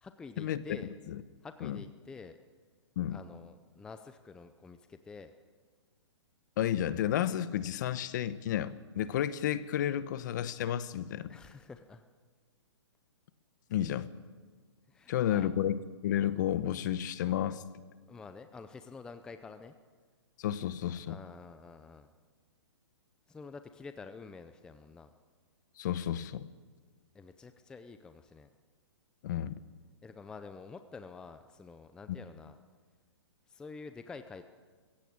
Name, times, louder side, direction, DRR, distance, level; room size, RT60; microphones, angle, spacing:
voice 1, 0.0-0.9 1.4-2.4 3.1-5.3 11.3-12.0 14.9-15.5 18.1-19.7 20.9-22.1 23.3-25.1 27.1-28.5 30.0-32.6 33.5-34.4, left 4 dB, 5° left, 9 dB, 0.6 m, -48 dB
voice 2, 6.6-11.3 13.7-14.1 15.1-17.6 20.4-21.2 25.8-26.5 29.2-29.6 32.1-32.2, left 11 dB, 40° left, 15 dB, 1.0 m, -32 dB
21.5 x 16.0 x 8.7 m, 1.5 s
hypercardioid pair, 160°, 15 cm